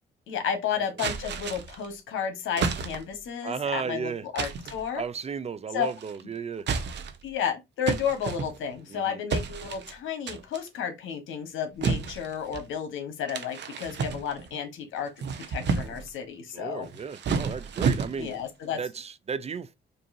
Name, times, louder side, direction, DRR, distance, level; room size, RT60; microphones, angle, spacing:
voice 1, 0.3-5.0 5.7-5.9 7.2-15.1 15.5-16.9 18.2-18.8, left 7 dB, 80° left, 1.4 m, -32 dB
sound 1, 1.0-1.9 2.6-3.2 4.4-4.9 5.8-6.2 6.6-7.3 7.9-8.8 9.3-9.9 10.3-10.7 11.8-12.7 13.3-14.5 15.0-16.1 16.8-18.4, right 5 dB, 60° right, 0.9 m, -31 dB
voice 2, 3.4-4.3 4.9-6.7 8.9-9.2 16.5-18.3 18.8-19.7, right 6 dB, 30° right, 0.4 m, -34 dB
5.3 x 2.7 x 2.6 m
cardioid pair, 90°, 20 cm